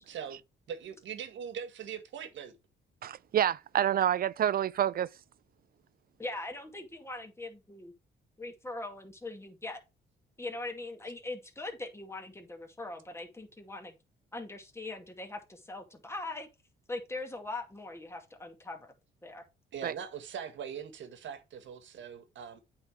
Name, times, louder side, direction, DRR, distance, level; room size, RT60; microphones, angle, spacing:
voice 1, 0.1-0.4 0.7-2.6 19.7-22.6, right 8 dB, 70° right, 1.6 m, -41 dB
voice 2, 3.0-5.1 19.8-19.9, right 10 dB, 50° right, 0.4 m, -28 dB
voice 3, 6.2-7.9 8.4-9.8 10.4-14.0 14.3-16.5 16.9-18.9 19.2-19.4, left 2 dB, 15° left, 2.3 m, -41 dB
8.7 x 4.2 x 4.6 m
cardioid pair, 90°, 20 cm